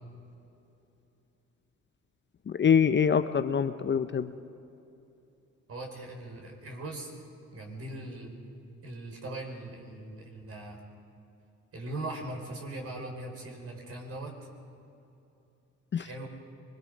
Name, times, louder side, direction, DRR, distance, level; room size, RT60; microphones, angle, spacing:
voice 1, 2.5-4.4 15.9-16.1, left 7 dB, 40° left, 10 dB, 0.7 m, -25 dB
voice 2, 5.7-7.1 7.5-8.3 8.8-10.8 11.7-14.3 16.0-16.3, right 2 dB, 50° right, 1 dB, 5.0 m, -40 dB
25.0 x 22.0 x 5.3 m, 2.8 s
cardioid pair, 90°, 30 cm